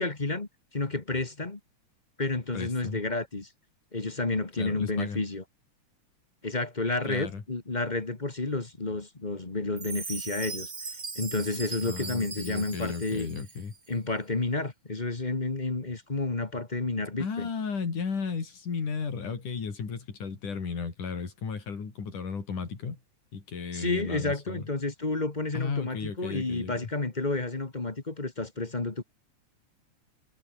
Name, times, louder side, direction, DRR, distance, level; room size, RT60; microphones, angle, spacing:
voice 1, 0.0-1.6 2.2-3.5 3.9-5.4 6.4-10.7 11.1-13.3 13.9-17.5 23.7-29.0, left 2 dB, 20° left, 1.4 m, -31 dB
voice 2, 2.5-3.0 4.6-5.2 7.1-7.4 11.8-13.7 17.2-23.0 23.3-24.7 25.5-26.8, left 5 dB, 90° left, 5.9 m, -34 dB
Chime, 9.8-13.8, right 4 dB, 25° right, 2.7 m, -39 dB
omnidirectional pair, 3.5 m